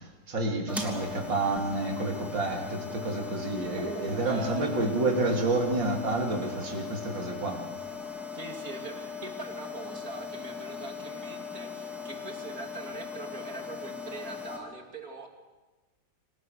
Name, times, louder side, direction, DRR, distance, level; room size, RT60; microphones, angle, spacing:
voice 1, 0.0-7.6, right 2 dB, 70° right, 1 dB, 3.8 m, -29 dB
sound 1, 0.7-14.6, left 5 dB, ahead, 3.0 m, -39 dB
voice 2, 3.8-4.9 8.3-15.3, right 3 dB, 45° right, 3 dB, 2.9 m, -41 dB
27.0 x 18.5 x 6.7 m, 1.2 s
omnidirectional pair, 2.1 m